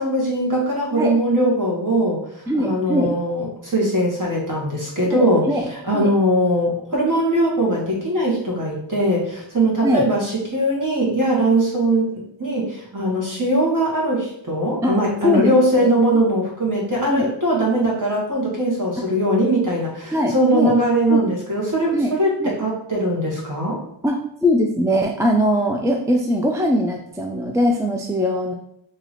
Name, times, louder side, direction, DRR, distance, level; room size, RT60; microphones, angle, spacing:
voice 1, 0.0-2.3 2.6-12.1 12.4-23.8, right 1 dB, 40° right, -3 dB, 1.4 m, -20 dB
voice 2, 2.5-3.1 5.1-5.6 5.9-6.1 9.8-10.1 14.8-15.0 15.2-15.9 17.1-17.3 17.7-17.9 20.1-20.7 21.1-21.2 21.9-22.1 22.4-22.5 24.0-28.5, equal, 5° right, 1 dB, 0.4 m, -21 dB
3.0 x 2.9 x 4.0 m, 0.74 s
wide cardioid pair, 50°, 47 cm